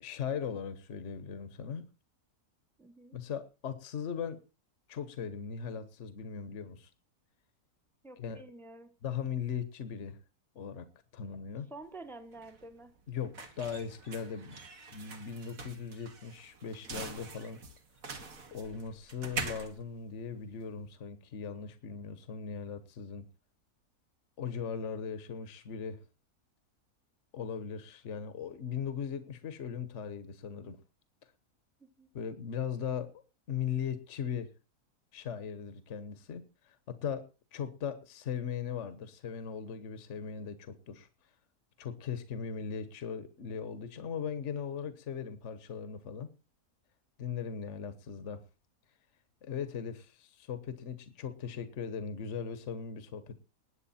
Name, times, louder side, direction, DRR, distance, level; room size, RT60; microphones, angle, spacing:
voice 1, 0.0-1.8 3.1-4.4 4.9-6.9 8.2-8.4 9.0-10.2 10.5-10.9 11.1-11.7 13.1-14.6 14.9-17.6 18.5-23.2 24.4-26.0 27.3-30.8 32.1-33.1 33.5-34.5 35.1-41.1 41.8-46.3 47.2-48.4 49.4-53.4, left 7 dB, 50° left, 12 dB, 1.4 m, -38 dB
voice 2, 2.8-3.2 8.0-8.9 11.7-13.0 31.8-32.1, right 2 dB, ahead, 9 dB, 1.1 m, -49 dB
sound 1, 11.8-20.9, right 4 dB, 60° right, 2.1 m, -44 dB
20.0 x 8.2 x 4.3 m, 0.31 s
omnidirectional pair, 1.6 m